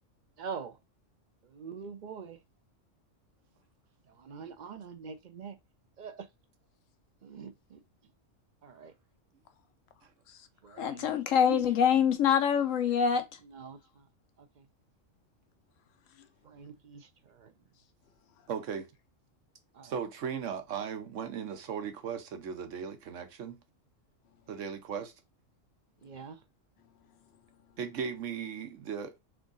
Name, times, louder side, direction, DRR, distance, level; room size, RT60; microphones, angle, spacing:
voice 1, 0.4-0.8 1.5-2.4 4.2-5.6 6.0-6.3 7.2-7.8 8.6-8.9 10.6-11.1 11.5-11.6 13.4-13.8 16.4-17.5 19.7-19.9 26.0-26.4, right 5 dB, 50° right, 0.6 m, -43 dB
voice 2, 10.3-10.9 16.1-16.3 18.3-18.5 24.3-24.5 26.0-26.2 26.8-27.8, left 9 dB, 65° left, 0.8 m, -62 dB
voice 3, 10.8-13.2, left 8 dB, 85° left, 1.2 m, -25 dB
voice 4, 18.5-18.9 19.8-23.6 24.5-25.1 27.8-29.2, right 7 dB, 75° right, 1.2 m, -37 dB
3.6 x 3.6 x 3.9 m
omnidirectional pair, 1.3 m